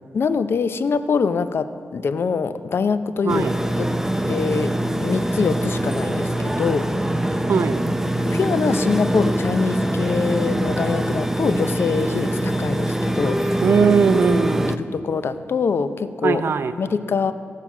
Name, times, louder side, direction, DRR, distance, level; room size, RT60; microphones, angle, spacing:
voice 1, 0.1-3.5 3.8-3.9 4.3-4.7 5.0-6.9 8.2-13.6 14.7-16.4 16.8-17.3, left 5 dB, 65° left, 12 dB, 0.5 m, -24 dB
sound 1, 3.3-14.8, right 1 dB, 10° right, 0.5 m, -23 dB
voice 2, 7.5-7.8 13.6-14.8 16.2-16.7, right 6 dB, 65° right, 11 dB, 0.6 m, -19 dB
15.0 x 5.8 x 6.0 m, 2.2 s
cardioid pair, 60°, 4 cm